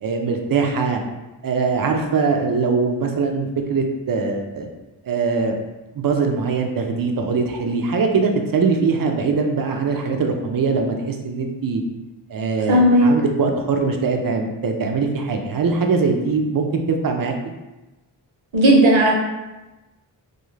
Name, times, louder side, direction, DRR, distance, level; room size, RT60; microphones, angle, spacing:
voice 1, 0.0-1.0 1.4-4.7 5.0-5.5 5.9-11.8 12.3-17.3, right 4 dB, 50° right, 3 dB, 0.4 m, -22 dB
voice 2, 12.7-13.1 18.5-19.1, right 1 dB, 70° right, -2 dB, 0.8 m, -14 dB
2.4 x 2.4 x 3.1 m, 1.1 s
wide cardioid pair, 75°, 47 cm